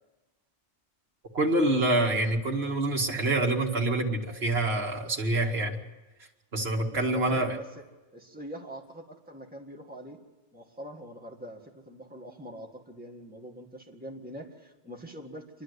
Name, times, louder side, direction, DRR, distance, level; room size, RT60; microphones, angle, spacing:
voice 1, 1.3-5.8 6.5-7.6, right 2 dB, 65° right, 0 dB, 2.2 m, -26 dB
voice 2, 6.9-7.6 8.1-10.2 10.5-15.6, right 1 dB, 10° right, 1 dB, 1.8 m, -43 dB
27.5 x 11.5 x 8.1 m, 1.1 s
omnidirectional pair, 1.1 m